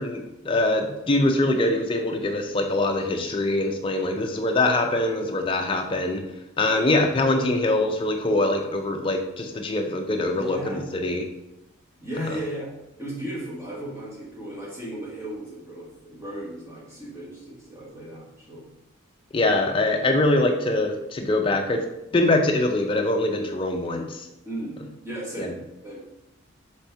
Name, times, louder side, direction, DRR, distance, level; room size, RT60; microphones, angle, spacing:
voice 1, 0.0-6.2 6.6-11.2 12.2-12.3 19.3-21.8 22.1-24.3 25.4-25.5, left 2 dB, 25° left, 3 dB, 0.4 m, -23 dB
voice 2, 6.7-7.0 10.3-10.8 12.0-12.7 13.0-18.6 24.4-26.0, right 1 dB, 15° right, -5 dB, 1.1 m, -36 dB
4.3 x 3.5 x 3.3 m, 0.90 s
head